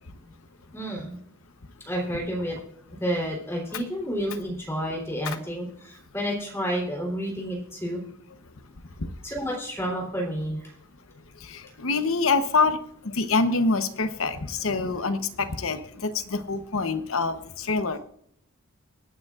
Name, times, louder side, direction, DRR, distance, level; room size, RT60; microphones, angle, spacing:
voice 1, 0.7-1.2 1.8-2.6 3.0-8.0 9.2-10.7, equal, 10° left, -1 dB, 3.4 m, -30 dB
voice 2, 11.8-12.8 13.2-18.0, left 4 dB, 80° left, 10 dB, 0.9 m, -25 dB
24.5 x 9.1 x 2.5 m, 0.68 s
head